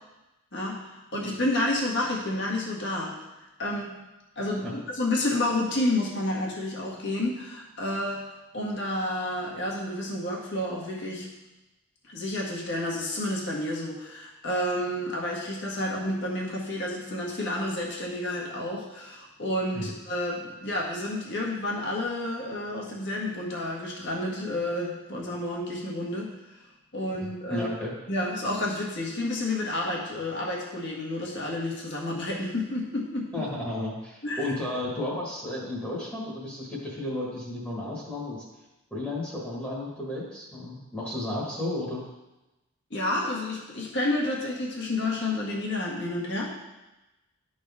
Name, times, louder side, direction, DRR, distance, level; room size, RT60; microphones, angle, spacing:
voice 1, 0.5-3.1 3.6-4.0 4.3-8.2 8.5-11.3 12.1-26.3 26.9-27.7 28.1-33.4 34.2-34.4 42.9-46.5, left 1 dB, 50° left, -3 dB, 1.7 m, -30 dB
voice 2, 27.5-27.9 33.3-38.4 38.9-42.0, left 1 dB, 10° left, -6 dB, 1.6 m, -33 dB
12.5 x 4.2 x 3.6 m, 1.0 s
head